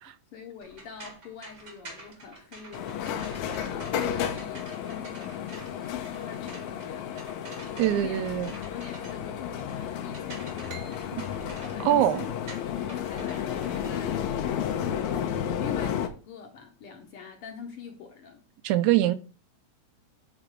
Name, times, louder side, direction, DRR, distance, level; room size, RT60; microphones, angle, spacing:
voice 1, 0.0-3.4 3.6-7.2 7.9-8.2 8.6-10.5 11.6-12.3 12.6-14.3 14.6-18.5, left 6 dB, 65° left, 1.6 m, -44 dB
sound 1, 0.6-14.8, right 2 dB, 35° right, 1.3 m, -48 dB
sound 2, 2.7-16.1, left 9 dB, 80° left, 2.1 m, -32 dB
voice 2, 7.8-8.5 11.8-12.3 18.6-19.2, right 13 dB, 90° right, 2.0 m, -23 dB
sound 3, 10.7-14.1, right 5 dB, 60° right, 1.2 m, -51 dB
8.2 x 3.4 x 5.0 m
omnidirectional pair, 3.3 m